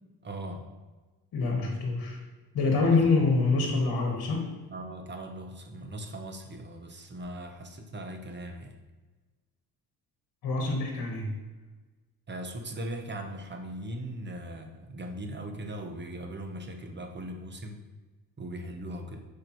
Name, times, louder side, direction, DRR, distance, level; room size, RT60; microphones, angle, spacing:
voice 1, 0.2-0.7 2.9-3.1 4.7-8.8 12.3-17.8 18.4-19.2, right 1 dB, 30° right, 4 dB, 1.0 m, -39 dB
voice 2, 1.3-2.2 2.5-4.5 10.4-11.3, left 3 dB, 60° left, 0 dB, 1.5 m, -25 dB
6.6 x 4.8 x 3.1 m, 1.3 s
supercardioid pair, 80°, 39 cm